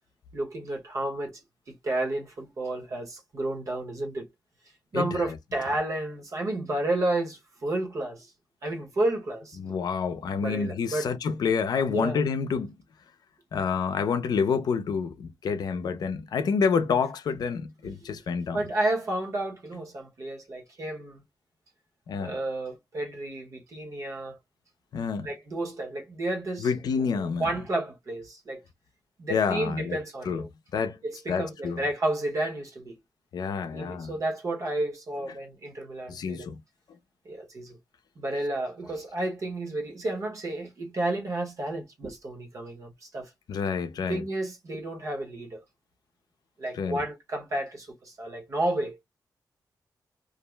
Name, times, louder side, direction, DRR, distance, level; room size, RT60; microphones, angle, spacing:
voice 1, 0.3-1.4 1.7-4.3 4.9-8.3 8.6-9.6 10.4-11.1 11.9-12.2 17.8-18.1 18.5-21.2 22.2-24.4 25.2-26.7 27.1-28.6 29.2-30.5 31.0-33.0 33.7-36.5 37.2-37.8 38.2-43.3 44.1-45.6 46.6-49.0, right 2 dB, 50° right, 0.9 m, -31 dB
voice 2, 4.9-5.3 9.6-12.7 13.5-18.6 22.1-22.4 24.9-25.3 26.6-27.5 29.3-30.0 30.3-30.4 30.7-31.0 31.3-31.8 33.3-34.1 36.1-36.6 43.5-44.2 46.7-47.0, left 6 dB, 65° left, 0.5 m, -28 dB
2.5 x 2.0 x 3.2 m
wide cardioid pair, 160°, 7 cm